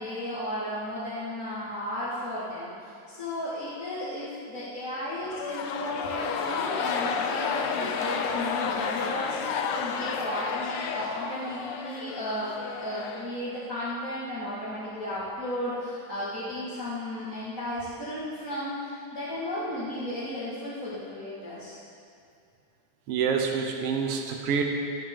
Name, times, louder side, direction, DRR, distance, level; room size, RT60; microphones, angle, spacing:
voice 1, 0.0-21.8, left 1 dB, 30° left, -12 dB, 2.3 m, -34 dB
sound 1, 5.3-13.7, left 6 dB, 85° left, 1.2 m, -31 dB
voice 2, 23.1-24.6, right 6 dB, 60° right, 3 dB, 1.9 m, -27 dB
13.5 x 13.0 x 3.8 m, 2.5 s
omnidirectional pair, 3.4 m